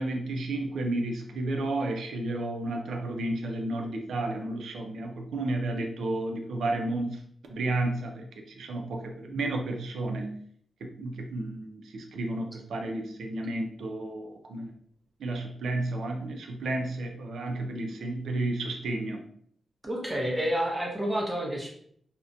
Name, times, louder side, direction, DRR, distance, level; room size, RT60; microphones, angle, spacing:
voice 1, 0.0-7.2 7.5-10.4 10.8-14.7 15.2-19.2, right 2 dB, 90° right, 2 dB, 0.4 m, -32 dB
voice 2, 19.8-21.7, equal, 10° right, -1 dB, 0.7 m, -29 dB
2.4 x 2.1 x 2.5 m, 0.62 s
wide cardioid pair, 105°, 0 cm